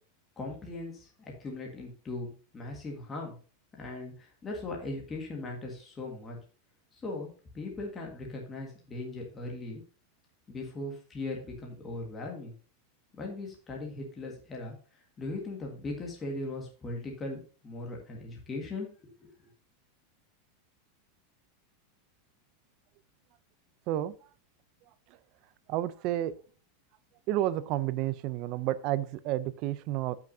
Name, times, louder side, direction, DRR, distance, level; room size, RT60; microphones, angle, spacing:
voice 1, 0.4-3.4 3.8-6.4 6.9-7.3 7.5-9.8 10.5-12.5 13.2-14.7 15.2-19.3, left 2 dB, 15° left, 0 dB, 1.6 m, -39 dB
voice 2, 25.7-26.3 27.3-30.2, right 14 dB, 35° right, 16 dB, 0.5 m, -30 dB
14.0 x 6.0 x 2.7 m, 0.39 s
supercardioid pair, 170°, 0 cm